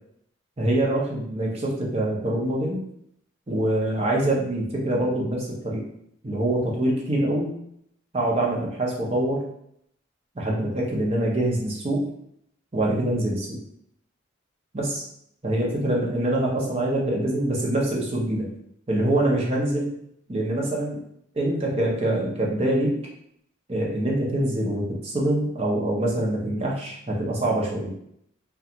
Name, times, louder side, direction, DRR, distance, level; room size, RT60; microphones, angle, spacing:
voice 1, 0.6-2.8 3.5-5.8 6.2-7.5 8.1-9.4 10.4-12.0 12.7-13.6 14.7-15.0 15.4-18.5 18.9-19.9 20.3-21.0 21.3-22.9 23.7-27.9, right 1 dB, 30° right, -3 dB, 0.6 m, -24 dB
2.4 x 2.2 x 2.8 m, 0.73 s
head